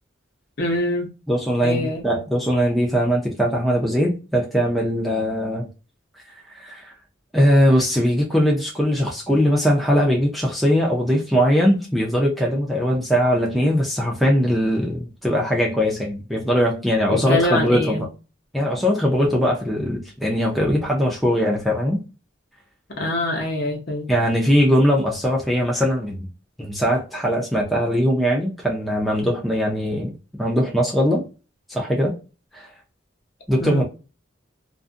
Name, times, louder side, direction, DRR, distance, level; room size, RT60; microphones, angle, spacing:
voice 1, 0.6-1.1 1.6-2.0 17.1-18.0 23.0-24.1 33.6-33.8, left 1 dB, 50° left, 0.8 m, -24 dB
voice 2, 1.3-5.7 6.5-6.9 7.3-18.0 18.5-22.0 24.1-26.3 26.6-30.1 30.4-31.2 31.7-32.1 32.5-32.7 33.5-33.8, equal, ahead, 0.5 m, -20 dB
2.5 x 2.4 x 2.4 m
head